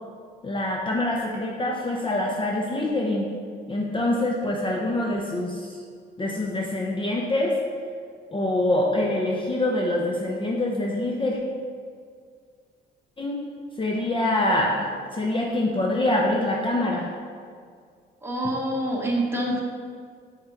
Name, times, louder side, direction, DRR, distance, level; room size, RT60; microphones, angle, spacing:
voice 1, 0.4-3.3 3.7-5.7 6.2-7.6 8.3-11.4 13.2-13.4 13.8-17.1, left 1 dB, 25° left, -2 dB, 0.6 m, -25 dB
voice 2, 18.2-19.6, right 1 dB, 10° right, -3 dB, 1.2 m, -26 dB
5.7 x 3.7 x 4.5 m, 2.1 s
cardioid pair, 90°, 20 cm